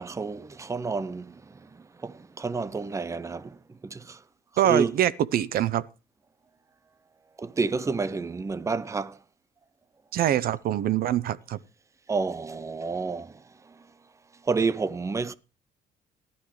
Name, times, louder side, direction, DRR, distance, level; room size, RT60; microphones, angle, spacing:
voice 1, 0.0-1.4 2.0-3.6 3.8-4.2 4.6-4.9 7.4-9.2 12.1-13.4 14.4-15.3, right 4 dB, 15° right, 0.7 m, -29 dB
voice 2, 4.6-5.8 10.1-11.6, right 11 dB, 60° right, 0.8 m, -24 dB
18.5 x 12.0 x 3.3 m
cardioid pair, 110°, 17 cm